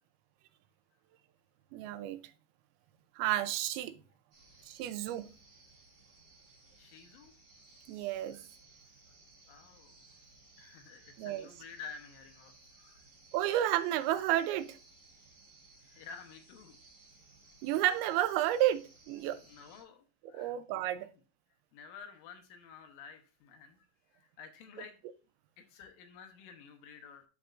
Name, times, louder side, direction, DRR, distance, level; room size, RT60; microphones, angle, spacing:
voice 1, 1.7-2.2 3.2-3.9 4.7-5.3 7.9-8.4 11.2-11.5 13.3-14.8 17.6-19.4 20.3-21.1, right 13 dB, 90° right, 2.5 m, -31 dB
sound 1, 4.3-19.8, right 3 dB, 35° right, 2.0 m, -60 dB
voice 2, 6.8-7.3 8.3-8.4 9.5-10.0 10.6-13.0 15.8-16.8 19.3-20.6 20.8-20.9 21.7-23.9 24.1-25.0 25.6-27.2, left 6 dB, 75° left, 2.5 m, -51 dB
12.0 x 4.2 x 2.4 m
omnidirectional pair, 4.4 m